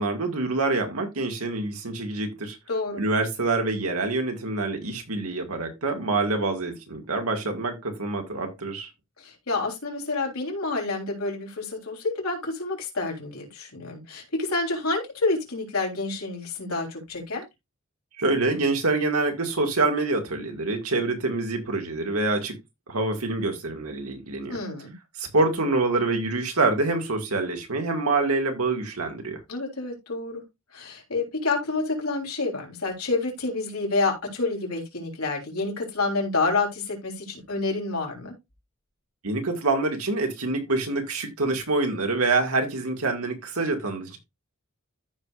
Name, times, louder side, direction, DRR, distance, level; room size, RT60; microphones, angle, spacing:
voice 1, 0.0-2.6 2.9-8.9 18.2-22.6 22.9-24.6 25.2-29.4 39.2-44.2, right 3 dB, 85° right, 2.1 m, -26 dB
voice 2, 2.7-3.0 9.2-17.4 24.5-24.9 29.5-30.4 30.7-38.3, left 3 dB, 80° left, 3.7 m, -28 dB
14.0 x 4.9 x 2.5 m
head